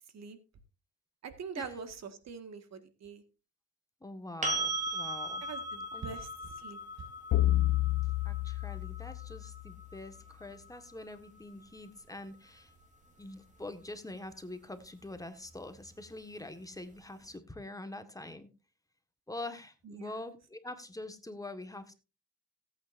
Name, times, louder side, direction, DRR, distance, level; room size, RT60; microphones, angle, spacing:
voice 1, 1.2-3.2 5.4-6.3 6.6-6.8 19.8-20.3, right 5 dB, 60° right, 9 dB, 1.8 m, -44 dB
voice 2, 4.0-5.4 5.9-6.2 8.2-12.7 13.2-18.5 19.3-21.9, left 2 dB, 10° left, 8 dB, 1.6 m, -45 dB
sound 1, 4.4-12.2 15.1-15.2, right 2 dB, 25° right, 3.3 m, -39 dB
sound 2, 7.3-9.8, left 15 dB, 70° left, 0.9 m, -29 dB
17.5 x 8.7 x 2.6 m, 0.30 s
cardioid pair, 90°, 30 cm